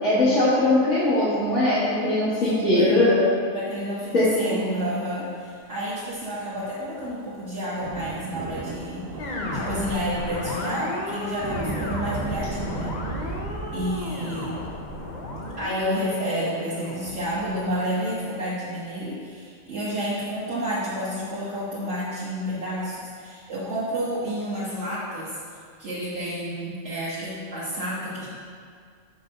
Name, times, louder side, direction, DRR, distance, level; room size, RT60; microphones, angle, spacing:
voice 1, 0.0-3.2 4.1-4.6, left 1 dB, 65° left, -12 dB, 1.8 m, -20 dB
voice 2, 2.5-3.0 3.5-12.9 13.7-14.7 15.6-25.4 25.8-28.3, equal, 65° right, -9 dB, 1.4 m, -30 dB
sound 1, 6.6-15.6, right 3 dB, 85° right, 1.3 m, -36 dB
sound 2, 9.2-18.5, left 2 dB, 40° left, 0.8 m, -34 dB
5.4 x 4.4 x 6.2 m, 2.1 s
omnidirectional pair, 1.3 m